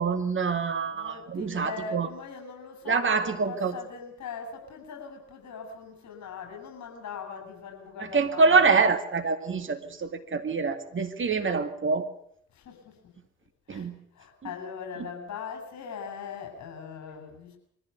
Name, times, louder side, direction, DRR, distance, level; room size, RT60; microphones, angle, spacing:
voice 1, 0.0-2.1 2.9-3.7 8.1-12.0 13.7-13.9, right 4 dB, 35° right, 6 dB, 2.3 m, -25 dB
voice 2, 0.8-8.9 12.5-13.1 13.7-17.6, left 5 dB, 50° left, 3 dB, 7.4 m, -41 dB
23.5 x 15.0 x 9.5 m, 0.69 s
figure-of-eight pair, 45°, 35 cm